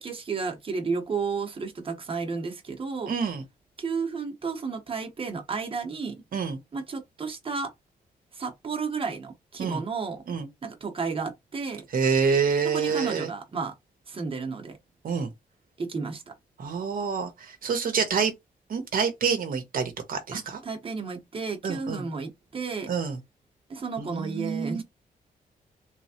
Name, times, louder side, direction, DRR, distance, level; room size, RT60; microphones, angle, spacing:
voice 1, 0.0-3.1 3.8-6.2 6.7-7.7 8.3-10.2 10.6-11.8 12.7-13.7 14.1-14.8 15.8-16.3 20.3-22.9 23.7-24.8, right 4 dB, 35° right, 1.1 m, -32 dB
voice 2, 3.1-3.4 6.3-6.6 9.6-9.8 10.3-10.5 11.9-13.3 15.0-15.3 16.6-18.3 18.7-20.6 21.6-22.1 22.9-23.2 24.0-24.8, right 6 dB, 65° right, 0.9 m, -27 dB
3.4 x 3.0 x 2.9 m
cardioid pair, 100°, 16 cm